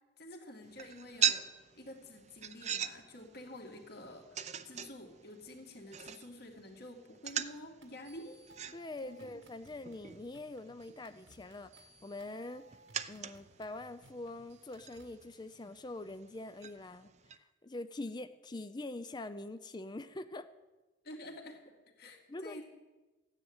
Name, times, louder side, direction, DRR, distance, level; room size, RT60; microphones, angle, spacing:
voice 1, 0.2-8.5 9.0-9.4 21.0-22.6, left 1 dB, 60° left, 2 dB, 2.5 m, -49 dB
sound 1, 0.6-17.4, right 10 dB, 40° right, 0.6 m, -42 dB
sound 2, 7.8-15.2, right 2 dB, 90° right, 2.0 m, -62 dB
voice 2, 8.7-12.7 13.1-17.1 17.4-20.5 22.3-22.6, left 2 dB, 25° left, 11 dB, 0.5 m, -44 dB
15.5 x 9.9 x 8.9 m, 1.2 s
head